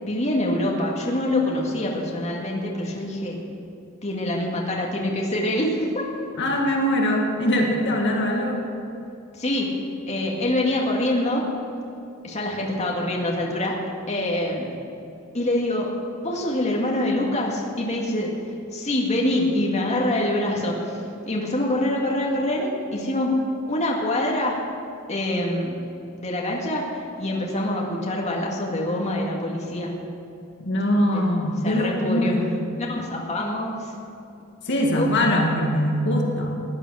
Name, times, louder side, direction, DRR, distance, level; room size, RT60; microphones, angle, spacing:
voice 1, 0.0-3.4 4.0-6.1 9.3-9.7 10.1-11.5 12.2-14.7 15.3-15.9 16.2-18.3 18.7-23.4 23.7-24.6 25.1-25.7 26.2-29.9 30.9-31.3 31.6-32.3 32.8-33.9 35.0-35.1, left 1 dB, 30° left, -2 dB, 2.1 m, -25 dB
voice 2, 6.4-8.7 30.6-32.6 34.6-36.5, left 1 dB, 55° left, 0 dB, 2.0 m, -22 dB
17.5 x 10.5 x 6.4 m, 2.7 s
head